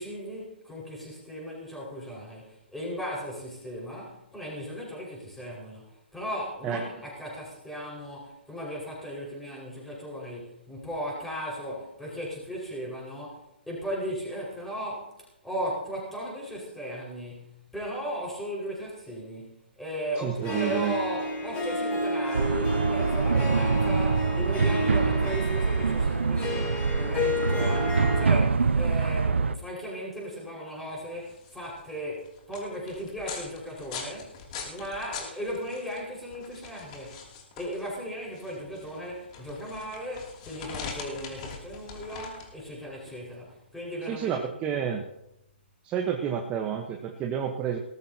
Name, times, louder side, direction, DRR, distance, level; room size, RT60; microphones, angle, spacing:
voice 1, 0.0-37.2 37.6-44.9, equal, 5° left, -5 dB, 5.4 m, -36 dB
voice 2, 20.2-20.9 44.1-45.0 45.8-47.8, right 8 dB, 20° right, 3 dB, 1.1 m, -30 dB
Harp, 20.4-28.3, left 1 dB, 20° left, 5.6 m, -31 dB
sound 1, 22.3-29.6, right 4 dB, 85° right, 0.7 m, -25 dB
sound 2, 31.1-45.6, left 6 dB, 35° left, 2.9 m, -43 dB
19.0 x 13.5 x 2.9 m, 0.84 s
hypercardioid pair, 145°, 6 cm